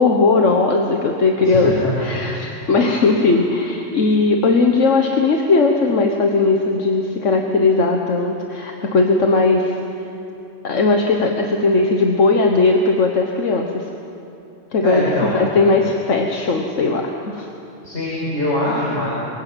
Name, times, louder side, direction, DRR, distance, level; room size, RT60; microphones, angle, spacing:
voice 1, 0.0-9.8 10.6-13.9 14.7-17.5, left 3 dB, 85° left, 2 dB, 1.6 m, -18 dB
voice 2, 1.4-1.9 2.3-2.4 14.8-15.4 17.8-19.1, left 1 dB, 65° left, -7 dB, 5.5 m, -23 dB
25.5 x 16.5 x 9.1 m, 2.8 s
omnidirectional pair, 1.2 m